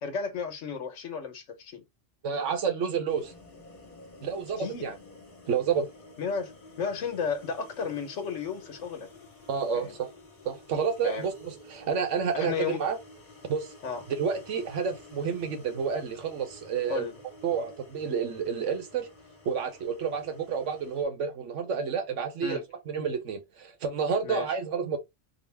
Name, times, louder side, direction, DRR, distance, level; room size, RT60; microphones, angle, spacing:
voice 1, 0.0-1.8 4.6-4.9 6.2-6.5 6.8-9.1 9.7-10.0 11.0-11.3 12.3-12.8 13.8-14.1 16.9-17.2 22.4-22.6 24.2-24.6, left 5 dB, 75° left, 1.3 m, -33 dB
voice 2, 2.2-3.3 4.2-5.0 5.5-5.9 9.5-10.1 10.4-13.0 13.5-13.7 14.1-17.1 17.4-19.1 19.4-25.0, right 6 dB, 75° right, 1.2 m, -30 dB
sound 1, 3.1-21.0, left 2 dB, 40° left, 1.3 m, -51 dB
3.9 x 2.2 x 3.2 m
omnidirectional pair, 1.3 m